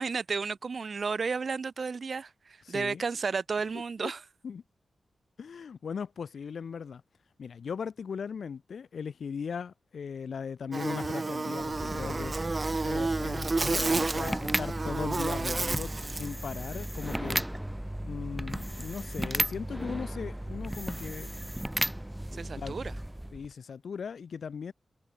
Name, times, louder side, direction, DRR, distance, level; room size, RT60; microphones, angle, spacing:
voice 1, 0.0-4.2 22.3-22.9, right 5 dB, 55° right, 2.6 m, -32 dB
voice 2, 2.7-3.0 4.0-4.1 4.4-4.6 5.4-7.0 7.4-12.3 12.8-17.4 18.0-21.3 22.6-22.7 23.3-24.7, left 6 dB, 75° left, 2.8 m, -38 dB
Buzz, 10.7-16.3, right 3 dB, 35° right, 2.9 m, -31 dB
sound 1, 11.6-23.5, right 1 dB, 5° right, 0.9 m, -35 dB
wide cardioid pair, 100°, 0 cm